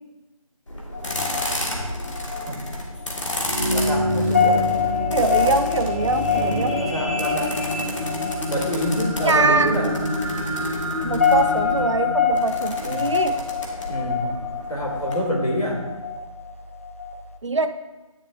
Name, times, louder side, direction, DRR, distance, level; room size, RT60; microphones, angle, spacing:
sound 1, 0.7-15.1, left 1 dB, 55° left, 1.8 m, -33 dB
sound 2, 0.9-17.4, left 6 dB, 25° left, 0.4 m, -27 dB
sound 3, 3.3-13.6 14.2-14.3, left 1 dB, 10° left, 1.4 m, -27 dB
voice 1, 3.7-4.8 6.3-7.5 8.5-9.9 12.9-13.1 13.9-14.3 14.7-15.8, equal, 90° left, -2 dB, 2.7 m, -27 dB
voice 2, 5.1-6.8 9.2-9.8 11.0-13.4 17.4-17.8, right 3 dB, 55° right, 11 dB, 0.5 m, -23 dB
10.5 x 8.4 x 2.6 m, 1.1 s
figure-of-eight pair, 160°, 18 cm